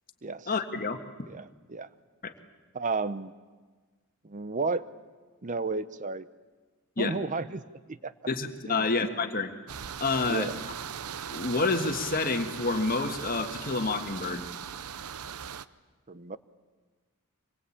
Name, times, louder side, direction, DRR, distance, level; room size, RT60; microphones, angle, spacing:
voice 1, 0.4-1.0 2.2-2.3 7.0-7.2 8.3-9.5 10.0-10.5 11.3-14.5, left 3 dB, 40° left, 6 dB, 1.7 m, -28 dB
voice 2, 1.3-1.9 2.7-3.3 4.3-4.9 5.4-6.2 7.0-7.6 7.9-8.1 8.7-8.8 10.2-10.6 16.1-16.4, right 3 dB, 35° right, 14 dB, 0.8 m, -32 dB
sound 1, 9.7-15.7, right 8 dB, 90° right, 0.7 m, -39 dB
25.5 x 22.0 x 8.7 m, 1.4 s
head